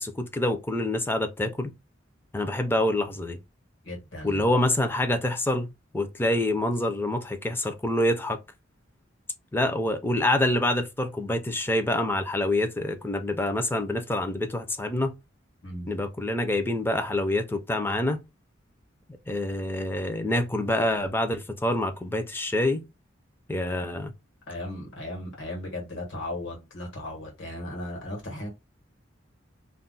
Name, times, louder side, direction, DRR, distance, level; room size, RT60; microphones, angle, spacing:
voice 1, 0.0-1.7 2.3-3.4 4.2-8.4 9.5-15.1 15.9-18.2 19.3-22.8 23.5-24.1, left 1 dB, 10° left, 0.4 m, -26 dB
voice 2, 3.8-4.5 15.6-15.9 24.5-28.5, left 1 dB, 70° left, 1.1 m, -36 dB
2.3 x 2.0 x 3.7 m
head